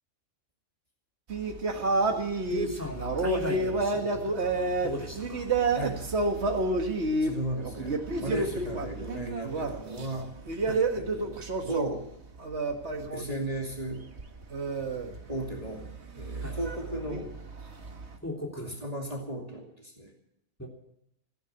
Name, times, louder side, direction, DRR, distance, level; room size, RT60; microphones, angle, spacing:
sound 1, 1.3-13.4 13.7-18.1, right 2 dB, 55° right, 1.9 m, -30 dB
voice 1, 2.5-5.5 8.3-8.4 10.7-10.8 16.4-16.6 18.2-18.7 20.6-20.7, equal, 10° left, -1 dB, 3.0 m, -36 dB
voice 2, 7.2-10.3 10.9-12.1 13.1-14.0 15.3-15.8 16.1-17.3 18.6-20.1, right 1 dB, 30° right, 0 dB, 2.7 m, -35 dB
15.5 x 10.0 x 9.4 m, 0.76 s
omnidirectional pair, 1.4 m